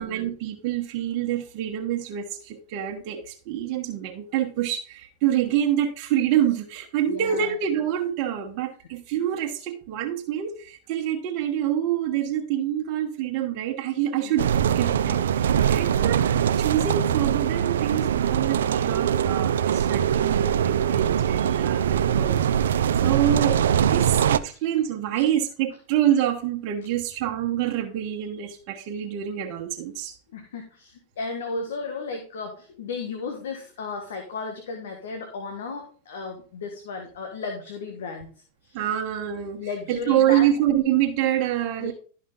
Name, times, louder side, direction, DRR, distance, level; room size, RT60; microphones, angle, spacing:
voice 1, 0.0-23.6 23.9-30.2 38.7-39.6 39.9-41.9, right 11 dB, 50° right, 2 dB, 1.2 m, -26 dB
voice 2, 7.0-7.6 14.2-14.5 15.7-16.2 22.9-23.3 30.3-38.3 38.6-38.8 39.6-40.5 41.8-41.9, left 4 dB, 80° left, 4 dB, 1.8 m, -35 dB
sound 1, 14.4-24.4, right 9 dB, 85° right, 0.5 m, -22 dB
12.5 x 5.4 x 3.7 m, 0.40 s
hypercardioid pair, 120°, 0 cm